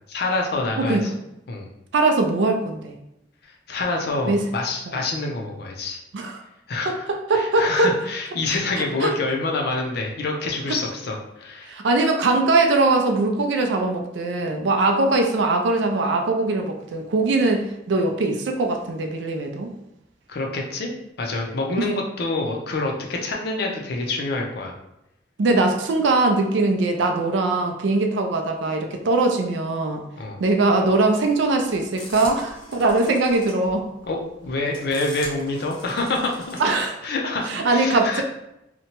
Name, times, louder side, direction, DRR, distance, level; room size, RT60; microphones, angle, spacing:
voice 1, 0.1-1.1 1.5-1.7 3.4-6.0 6.7-7.1 7.3-11.7 20.3-20.9 21.2-24.7 30.2-30.4 34.1-36.6 37.0-38.2, left 2 dB, 55° left, 1 dB, 0.5 m, -27 dB
voice 2, 1.9-3.0 4.3-4.4 4.9-5.0 6.1-6.4 6.9-7.9 8.8-9.1 10.7-10.8 11.7-19.7 21.8-21.9 25.4-30.0 30.4-33.9 36.6-37.0 37.5-38.2, right 2 dB, 70° right, 4 dB, 0.4 m, -21 dB
sound 1, 30.9-36.8, left 1 dB, 25° left, 0.7 m, -42 dB
2.8 x 2.2 x 2.8 m, 0.86 s
head